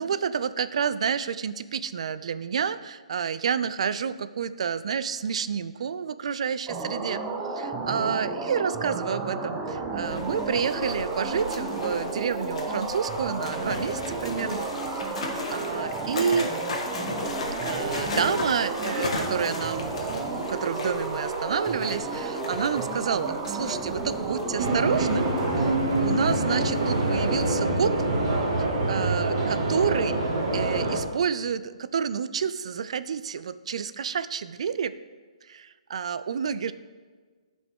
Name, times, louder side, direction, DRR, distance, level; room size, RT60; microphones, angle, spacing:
voice 1, 0.0-7.2 7.5-14.7 15.0-15.2 15.5-16.5 17.6-28.0 28.9-30.2 30.5-34.9 35.5-36.7, right 7 dB, 60° right, 14 dB, 0.4 m, -29 dB
sound 1, 6.7-25.8, right 3 dB, 10° right, 0.7 m, -32 dB
sound 2, 10.0-27.4, left 3 dB, 60° left, 1.4 m, -37 dB
sound 3, 24.6-31.0, right 2 dB, 40° right, 2.0 m, -25 dB
11.5 x 5.2 x 3.6 m, 1.5 s
hypercardioid pair, 145°, 4 cm